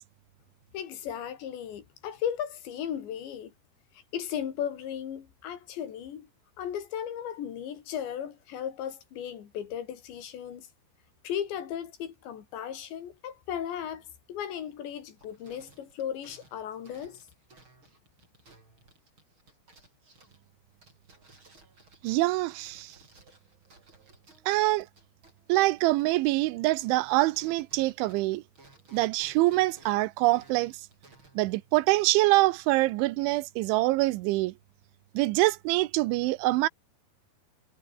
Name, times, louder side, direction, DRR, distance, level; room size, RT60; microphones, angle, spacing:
voice 1, 0.7-3.5 4.1-6.3 6.6-10.7 11.2-17.3, left 9 dB, 70° left, 5.0 m, -36 dB
sound 1, 14.9-26.5 26.8-32.9, right 2 dB, 25° right, 7.5 m, -59 dB
voice 2, 22.0-22.9 24.5-24.9 25.5-28.4 28.9-30.7 31.4-34.5 35.1-36.7, right 19 dB, 85° right, 3.2 m, -25 dB
omnidirectional pair, 5.3 m